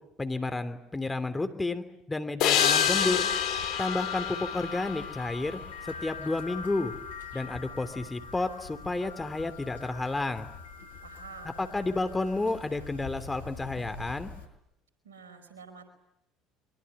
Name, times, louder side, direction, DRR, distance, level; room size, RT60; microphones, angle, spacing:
voice 1, 0.2-3.3 3.8-5.6 5.9-6.9 7.3-10.5 11.6-14.3, left 2 dB, 15° left, 9 dB, 3.0 m, -31 dB
sound 1, 2.4-5.7, left 10 dB, 65° left, 2.6 m, -28 dB
sound 2, 2.6-14.5, left 5 dB, 85° left, 5.4 m, -38 dB
voice 2, 11.0-11.7 15.0-15.9, right 5 dB, 85° right, 7 dB, 5.0 m, -48 dB
24.0 x 23.0 x 9.7 m, 0.81 s
hypercardioid pair, 65°, 0 cm